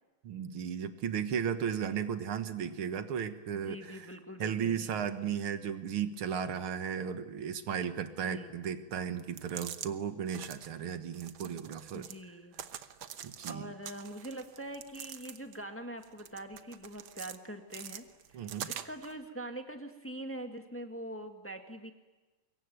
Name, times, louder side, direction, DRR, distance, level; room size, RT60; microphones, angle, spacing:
voice 1, 0.2-4.1 4.4-12.1 13.2-13.7 18.3-18.7, right 8 dB, 90° right, 9 dB, 2.3 m, -35 dB
voice 2, 3.5-5.0 8.2-8.5 11.9-12.6 13.4-18.1 18.3-21.9, right 1 dB, 5° left, 5 dB, 1.7 m, -43 dB
sound 1, 9.2-9.9 10.3-10.7 11.1-12.2 12.5-13.5 13.8-15.6 16.0-17.4 17.7-19.1, right 9 dB, 70° right, 1.8 m, -45 dB
25.5 x 22.5 x 9.4 m, 1.2 s
omnidirectional pair, 2.3 m